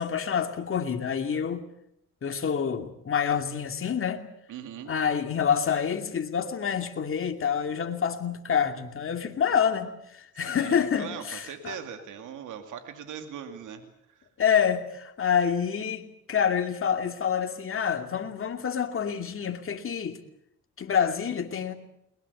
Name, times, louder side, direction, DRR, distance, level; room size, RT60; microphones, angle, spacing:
voice 1, 0.0-1.7 2.2-4.2 4.9-11.8 14.4-20.2 20.8-21.7, left 7 dB, 45° left, 2.6 m, -27 dB
voice 2, 4.5-4.9 9.5-9.6 10.4-14.3, right 8 dB, 80° right, 2.5 m, -40 dB
21.5 x 21.0 x 8.3 m
cardioid pair, 90°, 30 cm